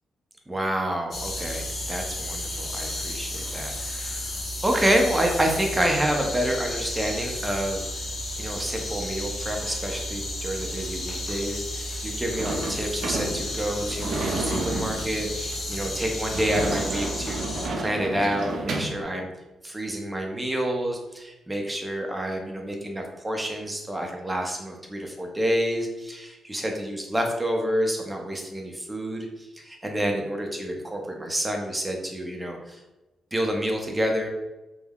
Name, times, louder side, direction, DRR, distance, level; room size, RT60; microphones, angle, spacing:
voice 1, 0.5-8.1 8.4-17.5 17.8-19.3 19.6-32.8 33.3-34.3, equal, 15° right, 2 dB, 0.5 m, -28 dB
sound 1, 1.1-17.7, left 1 dB, 50° left, 0.7 m, -32 dB
Sliding door / Slam, 12.4-19.0, right 2 dB, 70° right, 0.5 m, -31 dB
3.3 x 2.1 x 2.2 m, 1.0 s
cardioid pair, 100°, 0 cm